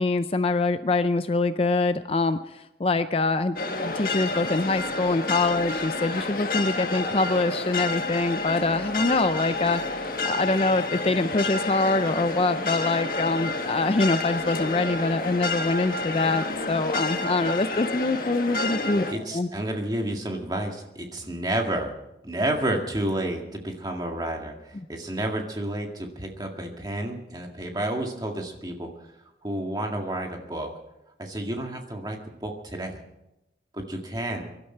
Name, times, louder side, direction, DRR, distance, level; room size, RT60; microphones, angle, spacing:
voice 1, 0.0-3.6 3.8-19.1 19.3-19.5, left 3 dB, 30° left, 11 dB, 0.4 m, -24 dB
sound 1, 3.6-19.1, left 2 dB, 50° left, 1.5 m, -30 dB
voice 2, 19.1-21.9 22.2-28.9 29.4-30.7 31.2-33.0 33.7-34.4, right 1 dB, 20° right, 2 dB, 2.0 m, -30 dB
23.5 x 12.0 x 4.5 m, 0.91 s
head